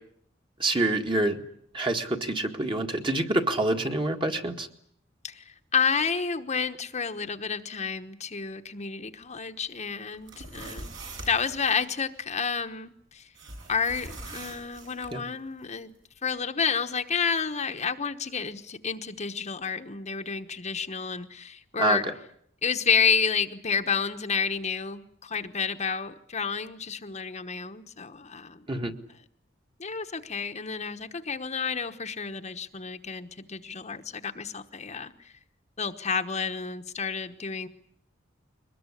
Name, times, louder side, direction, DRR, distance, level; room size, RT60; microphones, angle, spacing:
voice 1, 0.6-1.4 1.7-4.7 15.1-15.2 21.8-22.1 28.7-28.9, right 2 dB, 25° right, 4 dB, 1.8 m, -26 dB
voice 2, 5.7-11.0 11.3-13.2 13.7-15.9 16.2-22.1 22.6-28.7 29.8-35.1 35.8-37.7, left 6 dB, 35° left, 6 dB, 1.1 m, -30 dB
sound 1, 10.1-11.8 13.4-15.1, right 2 dB, 70° right, 7.7 m, -42 dB
23.0 x 20.5 x 9.9 m, 0.69 s
head